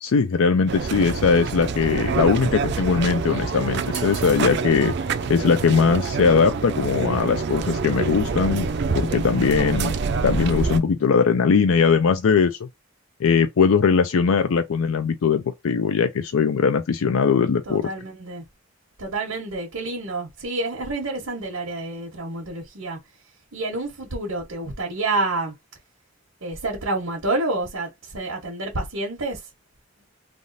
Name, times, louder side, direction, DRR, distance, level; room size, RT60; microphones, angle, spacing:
voice 1, 0.0-4.9 5.3-8.7 9.0-9.9 10.2-12.7 13.2-17.9, left 5 dB, 85° left, 0.4 m, -20 dB
sound 1, 0.7-10.8, right 4 dB, 55° right, 0.4 m, -26 dB
voice 2, 1.8-2.1 17.7-18.4 19.0-23.0 23.5-25.5 26.4-29.5, right 2 dB, 90° right, 1.1 m, -28 dB
3.4 x 2.4 x 2.6 m
head